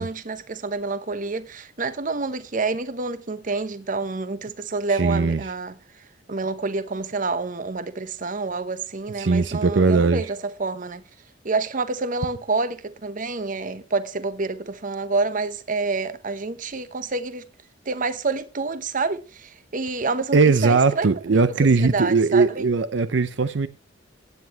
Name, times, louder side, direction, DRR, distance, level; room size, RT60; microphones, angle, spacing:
voice 1, 0.0-5.7 6.3-11.0 11.4-17.4 17.9-21.4 21.8-22.6, right 3 dB, 45° right, 0.9 m, -28 dB
voice 2, 4.9-5.4 9.2-10.3 20.3-23.7, right 4 dB, 70° right, 0.6 m, -19 dB
15.5 x 9.5 x 3.0 m
head